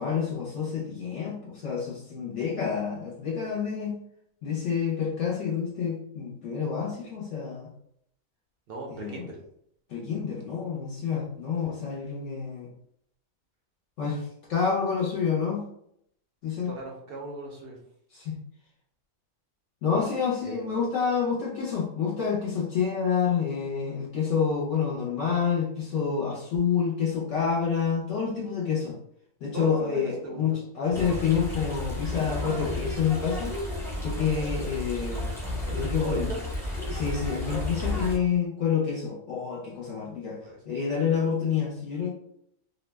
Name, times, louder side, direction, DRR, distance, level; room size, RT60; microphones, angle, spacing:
voice 1, 0.0-4.0 4.4-7.7 8.9-9.3 9.9-12.7 14.0-15.7 16.4-16.7 18.1-18.4 19.8-29.0 29.4-33.5 34.0-35.3 35.7-36.3 36.9-40.4 40.7-42.1, left 6 dB, 65° left, -4 dB, 0.9 m, -28 dB
voice 2, 8.7-9.4 16.6-17.8 20.4-20.7 29.5-30.4 30.9-31.0 35.6-36.4 40.4-40.6, right 2 dB, 60° right, -1 dB, 0.7 m, -38 dB
sound 1, 30.9-38.2, left 1 dB, 5° left, 0.4 m, -32 dB
2.6 x 2.1 x 3.2 m, 0.71 s
omnidirectional pair, 1.5 m